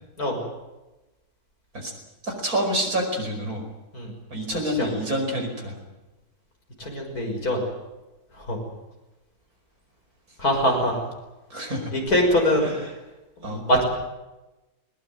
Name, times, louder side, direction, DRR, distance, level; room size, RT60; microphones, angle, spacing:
voice 1, 2.2-3.6 4.3-5.8 11.5-11.9 12.6-12.9 13.4-13.6, equal, 70° right, 3 dB, 5.7 m, -28 dB
voice 2, 6.8-7.6 8.4-8.6 10.4-11.0 11.9-12.7 13.4-13.8, equal, 70° left, 1 dB, 6.6 m, -23 dB
21.0 x 21.0 x 9.4 m, 1.0 s
omnidirectional pair, 1.6 m